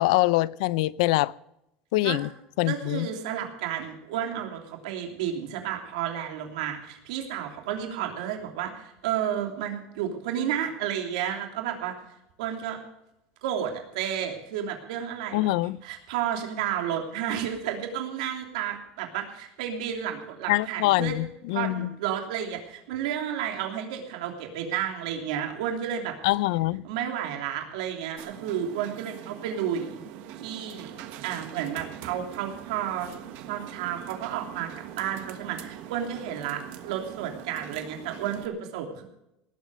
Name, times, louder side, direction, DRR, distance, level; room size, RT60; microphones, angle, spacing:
voice 1, 0.0-1.3 1.9-2.3 2.6-3.1 15.3-15.8 20.5-21.9 26.2-26.8, left 18 dB, 75° left, 0.5 m, -24 dB
voice 2, 2.6-12.0 12.4-12.8 13.4-15.5 15.8-21.2 21.5-26.2 26.8-30.0 30.4-30.9 31.2-33.1 33.5-34.7 34.9-39.0, right 9 dB, 85° right, 3.1 m, -31 dB
sound 1, 28.2-38.5, right 10 dB, 55° right, 1.4 m, -42 dB
19.0 x 8.4 x 6.7 m
cardioid pair, 165°, 4 cm